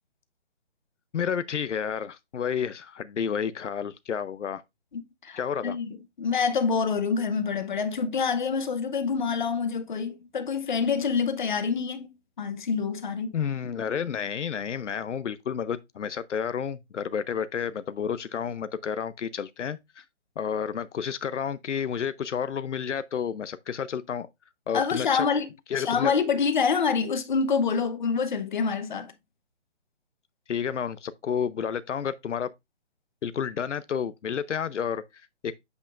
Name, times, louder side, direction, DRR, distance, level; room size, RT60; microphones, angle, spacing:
voice 1, 1.1-4.6 5.4-5.8 13.3-20.0 20.4-24.3 24.7-25.3 25.7-26.1 30.5-32.5 33.2-35.0 35.4-35.5, left 7 dB, 75° left, 0.6 m, -30 dB
voice 2, 4.9-12.1 12.4-13.3 24.7-25.5 25.8-29.1, left 5 dB, 40° left, 0.8 m, -26 dB
8.1 x 5.2 x 2.4 m
hypercardioid pair, 165°, 36 cm